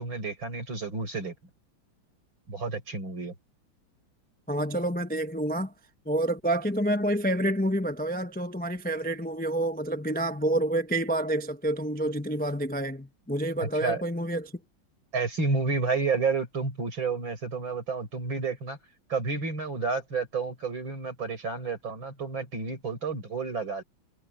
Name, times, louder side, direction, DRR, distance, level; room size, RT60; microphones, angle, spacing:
voice 1, 0.0-1.3 2.5-3.3 13.6-14.0 15.1-18.8 19.1-23.8, right 4 dB, 75° right, 7.1 m, -30 dB
voice 2, 4.5-5.7 6.1-14.5, right 1 dB, 10° left, 0.4 m, -28 dB
omnidirectional pair, 2.2 m